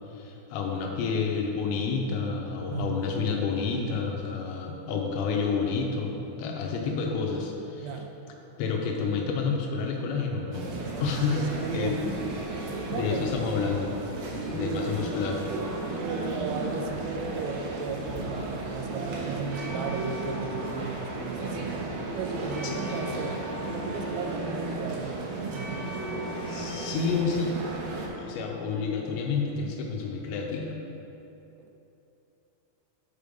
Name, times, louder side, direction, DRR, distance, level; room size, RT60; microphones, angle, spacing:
voice 1, 0.1-7.9 8.6-10.7 11.0-11.4 11.7-12.0 12.9-13.9 14.4-15.4 22.6-22.8 26.5-27.6 28.2-30.8, left 5 dB, 85° left, 1 dB, 2.9 m, -29 dB
voice 2, 2.7-3.4 7.8-8.1 11.3-12.2 12.6-13.3 14.6-15.1 16.0-25.9 31.6-31.7, right 5 dB, 90° right, 5 dB, 2.9 m, -36 dB
sound 1, 10.5-28.1, right 2 dB, 70° right, 2.2 m, -34 dB
7.8 x 5.3 x 5.0 m, 3.0 s
omnidirectional pair, 5.2 m